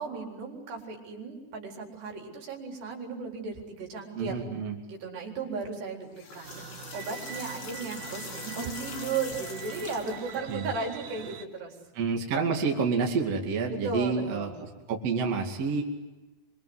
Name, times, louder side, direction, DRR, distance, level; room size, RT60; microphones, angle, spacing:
voice 1, 0.0-4.4 4.9-11.7 13.7-14.6, right 4 dB, 65° right, 0 dB, 6.1 m, -35 dB
voice 2, 4.2-4.8 10.5-10.7 11.9-15.8, right 5 dB, 40° right, 1 dB, 2.7 m, -29 dB
sound 1, 6.0-10.4, left 6 dB, 70° left, 5.0 m, -43 dB
sound 2, 6.4-11.5, right 10 dB, 90° right, 4.1 m, -43 dB
25.5 x 25.0 x 8.0 m, 1.2 s
omnidirectional pair, 5.4 m